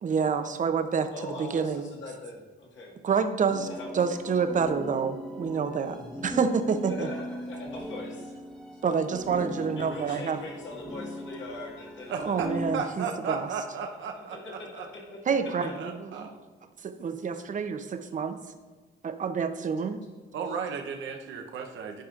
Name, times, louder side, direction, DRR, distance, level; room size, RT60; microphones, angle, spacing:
voice 1, 0.0-1.9 3.0-3.7 3.9-7.1 8.8-10.4 12.2-13.5 15.3-16.3 16.8-18.4 19.0-20.0, right 6 dB, 40° right, 8 dB, 0.6 m, -28 dB
voice 2, 1.1-2.9 3.6-4.0 6.0-6.2 6.9-8.4 8.7-8.8 9.8-12.8 13.3-15.8 16.1-16.2 17.3-17.4 20.4-20.6, left 2 dB, 70° left, -3 dB, 2.0 m, -42 dB
sound 1, 3.5-12.8, left 1 dB, ahead, 0.9 m, -39 dB
voice 3, 12.1-14.4 14.7-14.8 15.8-16.3 20.3-22.0, right 5 dB, 75° right, 3 dB, 0.8 m, -34 dB
10.5 x 4.9 x 2.5 m, 1.4 s
cardioid pair, 90°, 20 cm